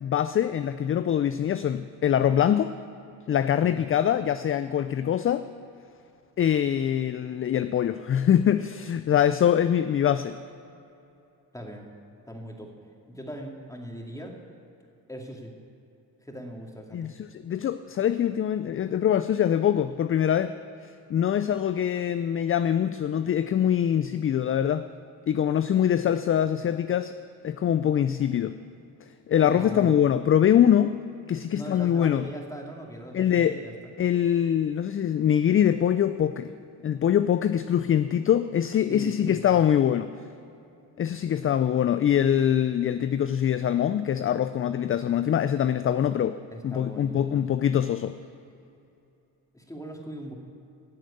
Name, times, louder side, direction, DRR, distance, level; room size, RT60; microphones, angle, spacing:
voice 1, 0.0-2.7 3.3-5.4 6.4-10.4 16.9-20.5 21.1-24.9 25.3-27.1 27.4-28.6 29.3-30.9 31.3-32.2 33.1-33.6 34.0-36.5 36.8-40.1 41.0-46.4 46.6-48.2, left 9 dB, 30° left, 12 dB, 0.4 m, -23 dB
voice 2, 11.5-11.8 12.3-12.7 13.1-14.4 15.1-15.5 16.2-17.1 29.4-29.9 31.5-33.7 38.9-39.6 46.5-47.4 49.5-50.3, equal, 5° left, 0 dB, 2.4 m, -39 dB
11.0 x 7.5 x 8.5 m, 2.7 s
supercardioid pair, 55°, 46 cm